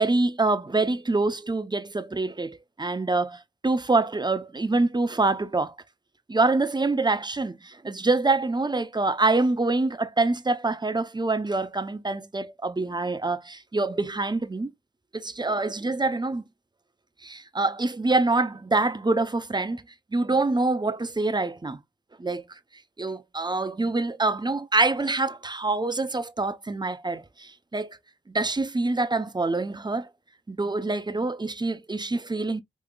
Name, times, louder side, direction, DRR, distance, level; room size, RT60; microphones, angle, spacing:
voice 1, 0.0-5.7 6.3-14.7 15.1-16.4 17.2-19.8 20.1-21.8 22.2-22.4 23.0-28.0 28.3-30.1 30.5-32.6, right 3 dB, 20° right, 0.6 m, -25 dB
5.1 x 2.8 x 2.3 m
wide cardioid pair, 75°, 20 cm